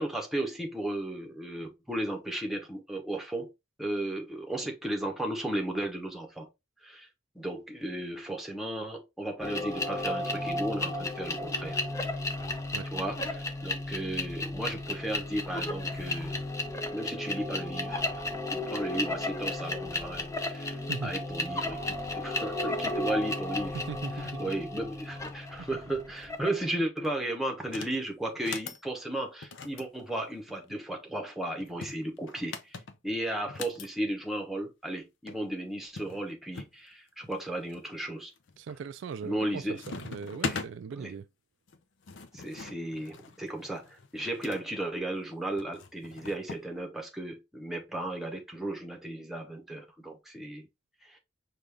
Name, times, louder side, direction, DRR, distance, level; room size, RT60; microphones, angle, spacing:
voice 1, 0.0-3.5 3.8-6.5 6.8-7.1 7.3-11.8 12.9-16.4 16.9-18.0 18.3-23.8 24.1-38.3 39.2-39.8 40.3-40.6 41.0-41.1 42.3-50.7 51.0-51.2, right 1 dB, ahead, 0.9 m, -35 dB
sound 1, 9.4-26.6, left 2 dB, 15° left, 0.5 m, -34 dB
voice 2, 23.7-24.4 25.6-25.7 38.6-41.3, right 6 dB, 65° right, 0.3 m, -39 dB
sound 2, 27.6-28.0 28.3-28.8 29.4-30.8 31.6-33.9 35.0-35.1 35.3-35.4 36.0-36.8 37.3-37.8 38.4-38.7 39.1-39.5 39.8-40.7 41.7-44.6 45.6-46.7, left 4 dB, 70° left, 0.5 m, -41 dB
5.2 x 2.4 x 3.3 m
head